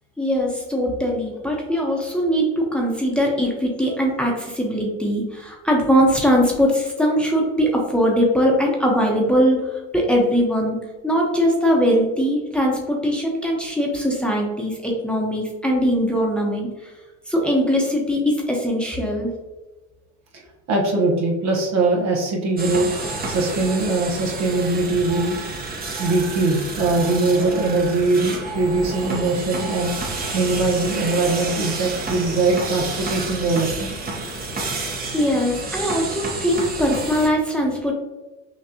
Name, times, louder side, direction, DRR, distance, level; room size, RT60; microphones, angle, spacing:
voice 1, 0.2-10.8 11.0-16.9 17.3-19.3 34.7-34.8 35.1-37.9, equal, 5° left, -2 dB, 1.0 m, -21 dB
voice 2, 20.7-22.9 23.3-25.4 26.0-29.9 30.3-34.0, right 2 dB, 60° right, 0 dB, 1.2 m, -21 dB
sound 1, 22.6-37.3, right 3 dB, 30° right, 1.1 m, -30 dB
6.1 x 2.5 x 2.9 m, 1.1 s
cardioid pair, 100°, 31 cm